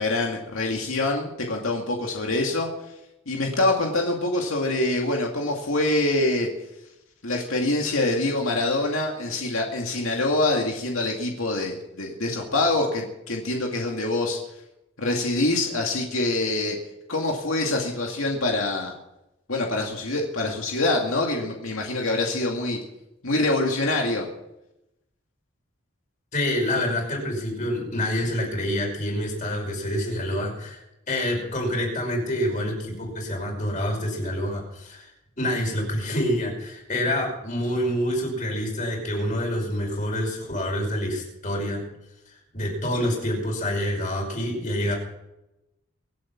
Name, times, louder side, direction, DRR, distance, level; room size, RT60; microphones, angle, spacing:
voice 1, 0.0-2.7 3.3-6.5 7.2-14.4 15.0-16.8 17.1-18.9 19.5-22.8 23.2-24.3, left 2 dB, 85° left, 0 dB, 2.3 m, -25 dB
voice 2, 26.3-35.1 35.4-41.8 42.3-44.9, left 1 dB, 35° left, 0 dB, 5.5 m, -27 dB
24.5 x 8.3 x 6.0 m, 0.90 s
head